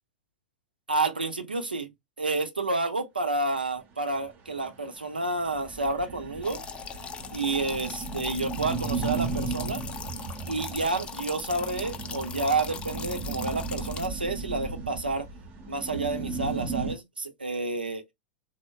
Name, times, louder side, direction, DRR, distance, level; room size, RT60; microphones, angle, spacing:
voice 1, 0.9-1.9 2.2-6.6 7.3-9.8 10.5-15.3 15.7-18.0, right 3 dB, 80° right, 0.6 m, -30 dB
sound 1, 4.2-4.3 4.7-4.8 5.0-5.1 5.4-16.9, right 4 dB, 35° right, 0.7 m, -35 dB
sound 2, 6.4-14.1, left 6 dB, 20° left, 0.4 m, -40 dB
3.3 x 2.0 x 2.3 m
figure-of-eight pair, 90°, 5 cm